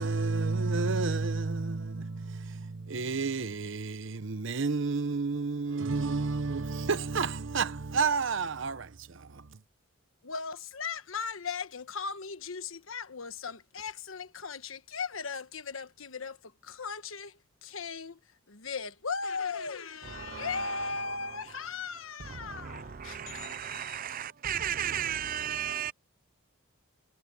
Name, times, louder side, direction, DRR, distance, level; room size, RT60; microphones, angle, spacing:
voice 1, 0.0-9.6, right 4 dB, 65° right, 0.9 m, -31 dB
voice 2, 10.2-24.0, left 5 dB, 80° left, 1.3 m, -38 dB
voice 3, 20.0-21.4 22.2-25.9, right 9 dB, 45° right, 0.5 m, -36 dB
head